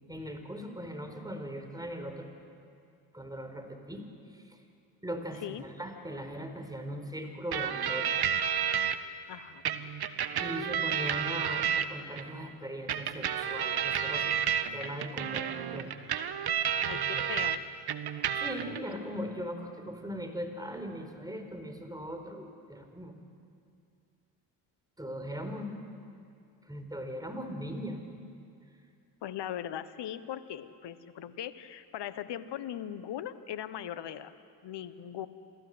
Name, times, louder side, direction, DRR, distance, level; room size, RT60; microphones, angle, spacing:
voice 1, 0.0-2.3 3.1-4.1 4.3-4.6 5.0-8.2 10.4-14.4 14.7-15.9 16.9-17.3 18.3-23.1 25.0-25.8 26.6-28.2, equal, 10° right, 5 dB, 4.6 m, -39 dB
sound 1, 7.5-9.0 9.7-12.2 12.9-17.6 17.9-18.8, right 8 dB, 50° right, 1.4 m, -31 dB
voice 2, 9.3-9.6 16.8-17.6 29.2-34.3 34.6-35.3, left 10 dB, 55° left, 13 dB, 1.3 m, -39 dB
27.5 x 17.0 x 8.0 m, 2.4 s
hypercardioid pair, 45°, 48 cm